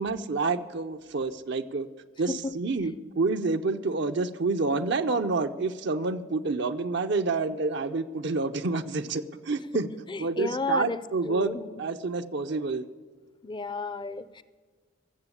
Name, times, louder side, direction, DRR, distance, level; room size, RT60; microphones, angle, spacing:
voice 1, 0.0-1.9 2.2-9.9 10.2-12.9, right 3 dB, 65° right, 0.7 m, -28 dB
voice 2, 2.3-2.9 9.6-11.8 13.4-14.4, left 3 dB, 25° left, 0.5 m, -34 dB
14.0 x 7.7 x 9.7 m
head